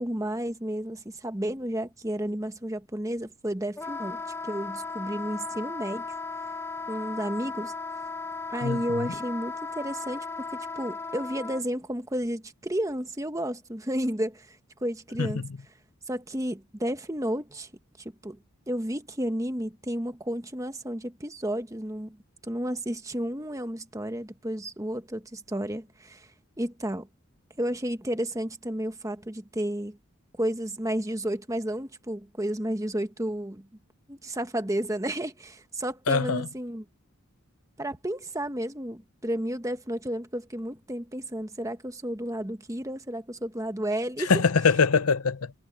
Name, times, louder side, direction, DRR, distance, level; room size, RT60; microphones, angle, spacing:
voice 1, 0.0-6.0 6.9-7.7 8.5-15.4 16.1-17.7 18.0-18.4 18.7-22.2 22.4-26.3 26.6-27.1 27.6-30.0 30.4-33.7 34.1-36.8 37.8-44.3, right 1 dB, 15° right, 1.2 m, -32 dB
Wind instrument woodwind instrument, 3.8-11.6, left 4 dB, 10° left, 0.4 m, -36 dB
voice 2, 8.6-9.1 15.2-15.5 36.1-36.5 44.3-45.5, left 5 dB, 90° left, 0.8 m, -23 dB
head